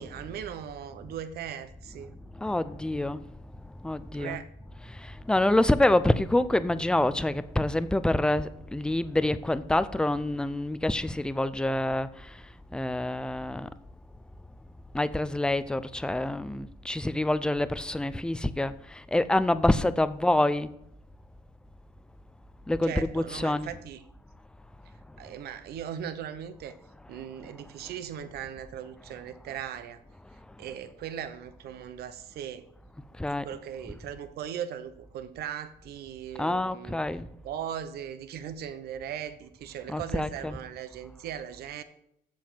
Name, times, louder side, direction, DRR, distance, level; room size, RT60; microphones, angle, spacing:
voice 1, 0.0-2.2 4.1-4.5 22.8-24.0 25.2-26.7 27.1-30.0 30.6-32.7 33.3-37.0 37.4-41.8, right 9 dB, 70° right, 0.9 m, -38 dB
voice 2, 2.3-4.4 4.8-13.7 14.9-20.7 22.7-23.7 25.1-25.2 27.0-27.5 27.8-27.9 29.1-29.2 29.5-29.6 30.5-30.6 33.2-33.5 36.4-37.3 39.9-40.6, left 1 dB, 5° left, 0.4 m, -27 dB
7.5 x 7.1 x 5.8 m
cardioid pair, 110°, 17 cm